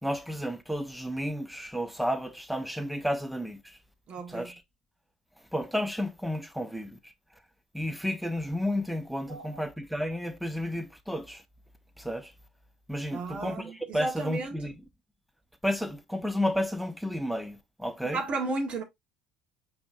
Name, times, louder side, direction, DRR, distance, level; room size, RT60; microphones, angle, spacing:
voice 1, 0.0-3.8 4.3-4.6 5.5-7.1 7.7-11.4 12.0-12.3 12.9-14.7 15.6-18.2, equal, ahead, 0.9 m, -32 dB
voice 2, 4.1-4.5 9.3-9.6 13.1-14.6 18.0-18.8, right 3 dB, 45° right, 1.4 m, -34 dB
5.2 x 3.1 x 2.6 m
hypercardioid pair, 65°, 2 cm